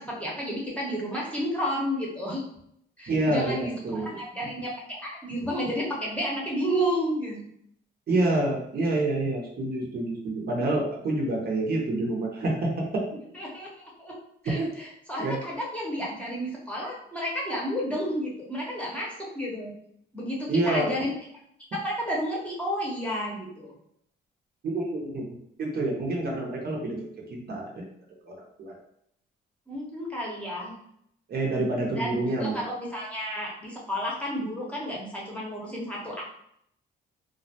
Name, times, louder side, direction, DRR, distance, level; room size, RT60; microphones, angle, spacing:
voice 1, 0.0-2.4 3.0-7.5 13.3-14.2 14.4-19.7 20.1-21.1 21.7-23.8 29.7-30.7 31.8-36.2, equal, 5° left, -5 dB, 0.8 m, -31 dB
voice 2, 3.1-4.1 8.1-13.0 14.6-14.7 15.2-15.4 20.5-20.9 24.6-25.3 25.6-27.0 27.3-27.8 28.2-28.8 31.3-32.7, right 2 dB, 50° right, -2 dB, 0.7 m, -27 dB
2.4 x 2.1 x 2.7 m, 0.72 s
cardioid pair, 90°, 20 cm